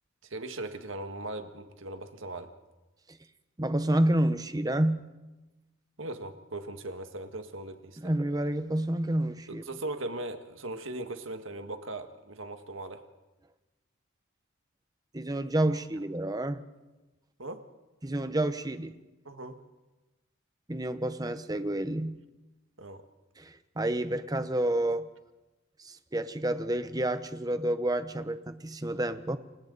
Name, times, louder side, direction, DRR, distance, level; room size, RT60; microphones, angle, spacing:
voice 1, 0.2-2.5 6.0-8.0 9.5-13.0 17.4-17.6 19.2-19.6 22.8-23.0, right 2 dB, 75° right, 7 dB, 1.8 m, -39 dB
voice 2, 3.6-5.1 8.0-9.6 15.1-16.6 18.0-19.0 20.7-22.2 23.4-25.1 25.8-29.4, right 1 dB, 20° right, 11 dB, 0.9 m, -29 dB
29.0 x 25.0 x 4.1 m, 1.1 s
head